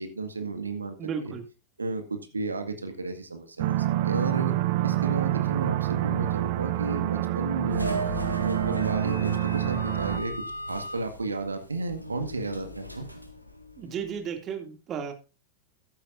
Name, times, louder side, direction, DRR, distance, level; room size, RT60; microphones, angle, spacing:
voice 1, 0.0-1.0 1.2-1.4 1.8-4.6 4.8-8.0 8.4-10.3 10.7-13.1, right 3 dB, 80° right, 7 dB, 1.9 m, -33 dB
voice 2, 1.0-1.4 13.8-15.1, right 7 dB, 30° right, 6 dB, 2.5 m, -34 dB
sound 1, 3.6-10.2, right 14 dB, 50° right, 0.9 m, -27 dB
sound 2, 7.7-14.2, left 1 dB, 90° left, 1.8 m, -37 dB
14.5 x 12.0 x 2.6 m, 0.29 s
figure-of-eight pair, 90°, 0 cm